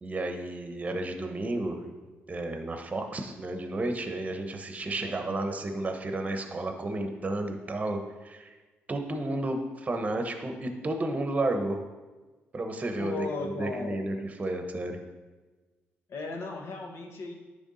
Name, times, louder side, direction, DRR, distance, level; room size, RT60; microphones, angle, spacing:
voice 1, 0.0-1.9 2.3-8.5 8.9-11.8 12.5-15.0, right 2 dB, 30° right, 5 dB, 0.9 m, -32 dB
voice 2, 5.0-5.4 13.0-14.0 16.1-17.3, left 3 dB, 65° left, 2 dB, 1.2 m, -36 dB
10.0 x 3.5 x 4.1 m, 1.2 s
cardioid pair, 80°, 5 cm